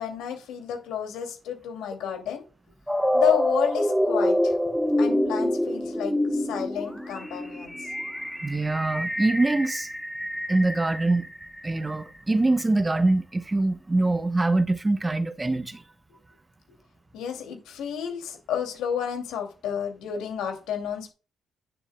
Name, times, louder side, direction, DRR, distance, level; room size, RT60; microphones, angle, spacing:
voice 1, 0.0-2.4 3.1-4.6 5.0-7.9 17.1-21.1, left 9 dB, 90° left, 2.5 m, -31 dB
sound 1, 2.9-11.8, left 1 dB, ahead, 1.2 m, -26 dB
voice 2, 8.4-9.9 10.5-11.3 11.6-15.8, right 2 dB, 20° right, 0.8 m, -24 dB
9.9 x 7.1 x 2.2 m
cardioid pair, 90°, 0 cm